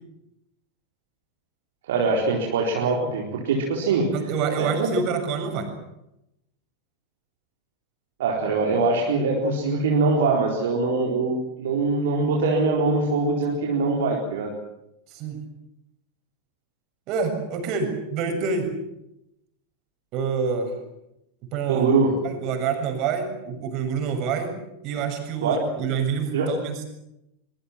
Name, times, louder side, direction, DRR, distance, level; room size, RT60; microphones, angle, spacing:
voice 1, 1.9-4.1 4.6-5.0 8.2-14.5 21.7-22.1 25.4-25.6 26.3-26.5, right 3 dB, 60° right, -1 dB, 4.3 m, -23 dB
voice 2, 4.1-5.7 15.1-15.4 17.1-18.7 20.1-20.7 21.5-21.9 22.2-24.5 24.8-26.8, right 6 dB, 40° right, 6 dB, 7.2 m, -27 dB
24.0 x 23.5 x 7.5 m, 0.85 s
figure-of-eight pair, 90°, 0 cm